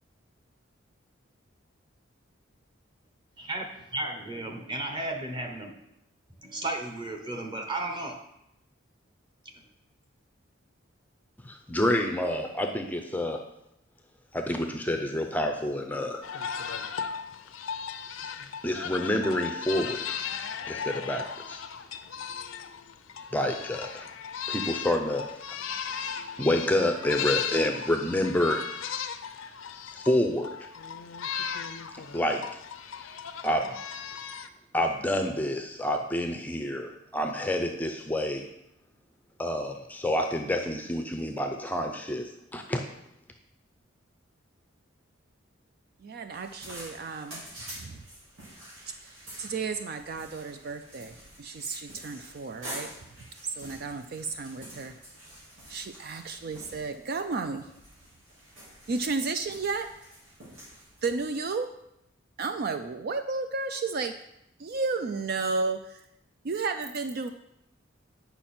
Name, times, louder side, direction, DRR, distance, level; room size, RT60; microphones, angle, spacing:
voice 1, 3.9-5.8 6.4-8.2, right 2 dB, 25° right, 3 dB, 1.0 m, -34 dB
voice 2, 11.4-13.4 14.3-16.2 18.6-20.0 20.7-21.6 23.3-24.1 24.5-25.3 26.4-28.7 30.0-30.6 32.1-32.4 33.4-33.7 34.7-38.4 39.4-42.8, left 1 dB, 10° left, 4 dB, 0.5 m, -28 dB
sound 1, 16.2-34.5, left 7 dB, 85° left, 0.5 m, -36 dB
voice 3, 46.0-47.5 47.7-48.1 49.0-52.9 53.2-54.9 55.7-57.7 58.9-59.9 61.0-61.7 62.4-64.2 64.6-66.1 66.4-67.3, right 4 dB, 50° right, 8 dB, 0.4 m, -33 dB
sound 2, 46.3-61.2, equal, 85° right, 3.6 m, -47 dB
8.9 x 5.7 x 4.3 m, 0.82 s
head